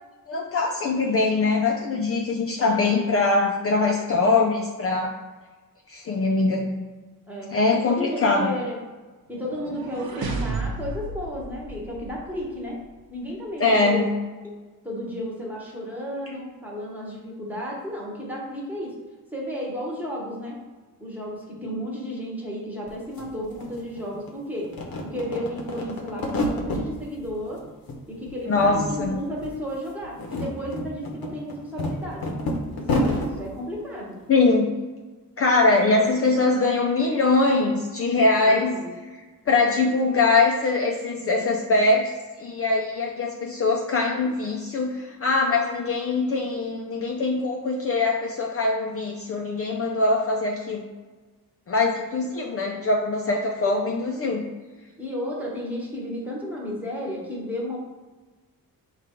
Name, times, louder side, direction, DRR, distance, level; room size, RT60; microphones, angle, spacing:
voice 1, 0.3-5.1 5.9-6.8 7.5-8.5 13.6-14.1 28.5-29.1 34.3-34.7 35.4-38.8 39.5-42.1 42.4-50.9 51.7-54.5, left 3 dB, 40° left, 0 dB, 0.4 m, -22 dB
voice 2, 7.3-8.8 9.3-12.8 13.1-14.1 14.4-14.6 14.8-18.9 19.3-20.6 21.0-24.7 25.0-27.6 28.1-32.3 32.7-34.2 38.4-38.9 53.6-53.8 55.0-57.8, equal, 5° right, -4 dB, 1.0 m, -33 dB
sound 1, 9.4-12.5, right 3 dB, 90° right, 0.7 m, -33 dB
sound 2, 22.9-23.0 23.2-24.3 24.6-26.9 27.3-28.0 28.3-29.1 29.4-29.5 30.0-33.3, left 1 dB, 85° left, 0.8 m, -29 dB
4.9 x 2.4 x 4.3 m, 1.3 s
wide cardioid pair, 145°, 35 cm